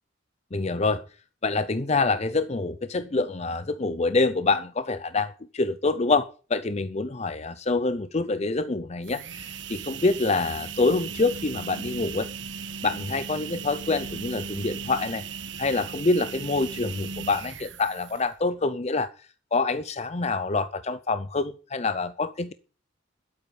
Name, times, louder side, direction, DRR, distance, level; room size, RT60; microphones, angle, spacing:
voice 1, 0.5-1.0 1.4-12.3 12.8-15.2 15.6-22.5, left 3 dB, 35° left, 0.6 m, -26 dB
sound 1, 8.9-18.4, right 6 dB, 70° right, 1.3 m, -37 dB
12.5 x 8.6 x 8.5 m
head